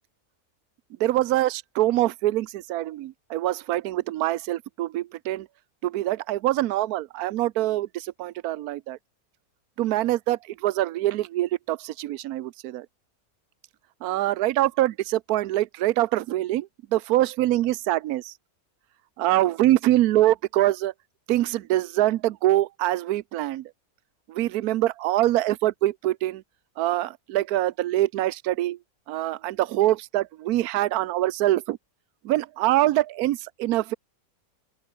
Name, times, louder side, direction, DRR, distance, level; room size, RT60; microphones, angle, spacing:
voice 1, 1.0-5.5 5.8-9.0 9.8-12.9 14.0-18.3 19.2-20.9 21.3-23.7 24.3-26.4 26.8-28.8 29.1-31.8 32.2-33.9, right 15 dB, 85° right, 1.1 m, -24 dB
open air
omnidirectional pair, 1.6 m